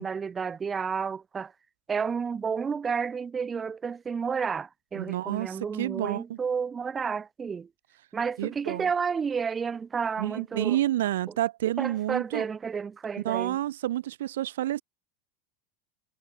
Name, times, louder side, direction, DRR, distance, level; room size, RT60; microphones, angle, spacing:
voice 1, 0.0-1.5 1.9-7.7 8.1-10.8 11.8-13.6, right 6 dB, 25° right, 0.5 m, -31 dB
voice 2, 5.0-6.4 8.4-8.9 10.2-12.5 13.2-14.8, right 13 dB, 70° right, 0.4 m, -29 dB
hypercardioid pair, 85°, 0 cm